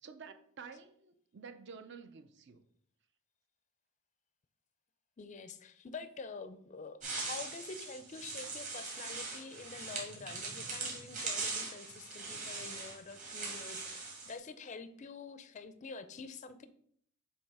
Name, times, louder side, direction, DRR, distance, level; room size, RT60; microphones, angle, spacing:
voice 1, 0.0-2.6, right 5 dB, 55° right, 0.5 m, -50 dB
voice 2, 5.2-16.7, left 4 dB, 35° left, 0.4 m, -47 dB
sound 1, 7.0-14.3, right 3 dB, 35° right, 1.8 m, -41 dB
7.1 x 2.8 x 4.7 m
head